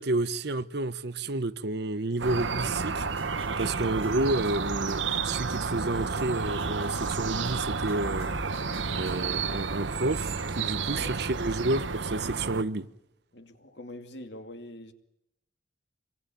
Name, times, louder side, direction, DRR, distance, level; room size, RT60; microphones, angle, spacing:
voice 1, 0.0-3.1 3.6-8.3 8.9-12.9, right 2 dB, 60° right, 1.0 m, -30 dB
sound 1, 2.2-12.6, right 4 dB, 75° right, 1.2 m, -31 dB
sound 2, 2.5-3.7 4.0-7.1 7.4-9.4, equal, 30° left, 4.5 m, -46 dB
voice 2, 13.3-14.9, left 1 dB, 60° left, 2.4 m, -43 dB
27.0 x 22.5 x 9.2 m
head